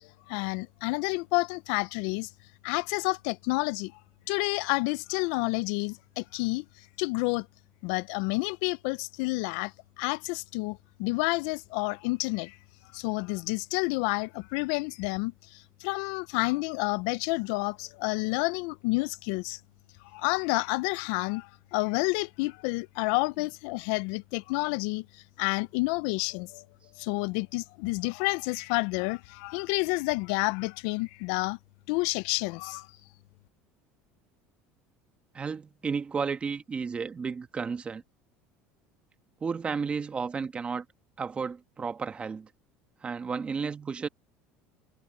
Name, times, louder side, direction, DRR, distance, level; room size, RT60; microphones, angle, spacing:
voice 1, 0.0-2.3 2.6-3.9 4.3-6.6 7.0-7.5 7.8-12.6 12.9-19.6 20.1-25.1 25.4-26.6 27.0-31.6 31.9-32.9, left 26 dB, 75° left, 0.4 m, -29 dB
voice 2, 35.3-38.0 39.4-40.8 41.2-42.5 43.0-44.1, right 5 dB, 20° right, 1.4 m, -32 dB
supercardioid pair, 130°, 5 cm